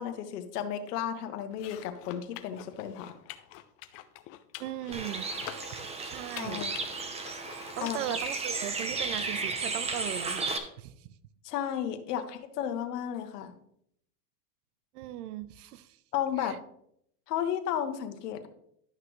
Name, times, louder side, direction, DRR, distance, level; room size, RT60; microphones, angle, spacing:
voice 1, 0.0-3.1 6.4-6.7 7.8-8.0 11.4-13.5 16.1-16.6 17.3-18.5, left 9 dB, 75° left, 7 dB, 1.3 m, -33 dB
sound 1, 1.5-8.3, left 13 dB, 30° left, 0.5 m, -46 dB
voice 2, 4.6-5.3 5.7-6.6 7.8-11.1 12.1-12.2 14.9-16.0 16.4-16.6, right 12 dB, 70° right, 15 dB, 0.8 m, -38 dB
Bird, 4.9-10.6, right 3 dB, 15° right, 0.7 m, -34 dB
11.5 x 5.9 x 3.1 m, 0.71 s
supercardioid pair, 130°, 47 cm